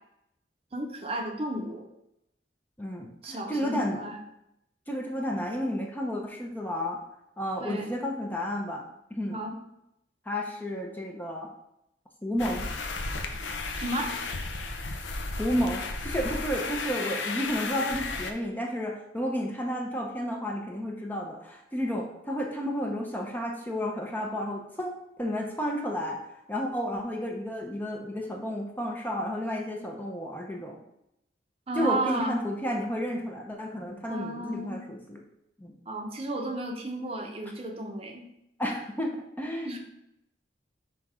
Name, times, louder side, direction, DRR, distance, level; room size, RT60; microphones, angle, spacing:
voice 1, 0.7-1.9 3.2-4.2 7.6-8.0 9.3-9.6 13.8-14.2 31.7-32.4 34.1-34.8 35.9-38.3 39.6-39.8, right 1 dB, 30° right, 3 dB, 0.7 m, -33 dB
voice 2, 2.8-4.0 4.9-7.0 7.4-8.9 9.1-9.4 10.3-11.5 12.2-12.7 15.4-26.2 26.5-30.8 31.7-35.2 35.6-35.7 38.6-39.8, equal, 10° left, 1 dB, 0.7 m, -32 dB
sound 1, 12.4-18.3, left 3 dB, 85° left, 0.7 m, -34 dB
5.7 x 3.8 x 4.8 m, 0.81 s
head